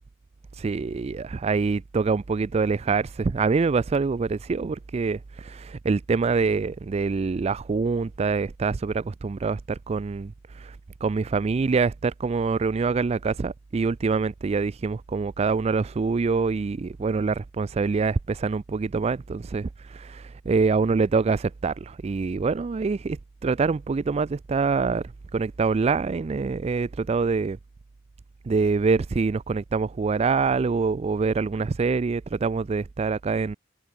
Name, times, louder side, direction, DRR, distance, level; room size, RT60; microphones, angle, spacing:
voice 1, 0.6-10.8 11.0-25.0 25.3-27.6 28.5-33.6, right 4 dB, 30° right, 0.4 m, -25 dB
head